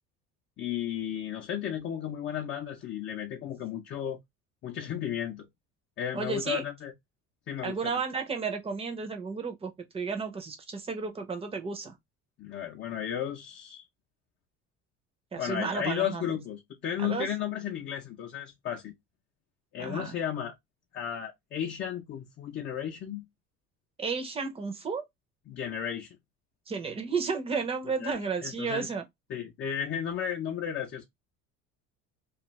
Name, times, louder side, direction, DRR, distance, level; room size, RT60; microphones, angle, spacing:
voice 1, 0.6-4.2 4.6-5.5 6.0-6.9 7.5-7.8 12.4-13.8 15.4-18.9 19.7-20.5 20.9-23.3 25.5-26.2 28.0-28.9 29.3-31.0, left 9 dB, 40° left, 0.6 m, -34 dB
voice 2, 6.1-6.6 7.6-12.0 15.3-16.3 17.0-17.3 19.8-20.1 24.0-25.1 26.7-29.0, right 5 dB, 20° right, 0.6 m, -33 dB
2.4 x 2.4 x 3.0 m
cardioid pair, 140°, 31 cm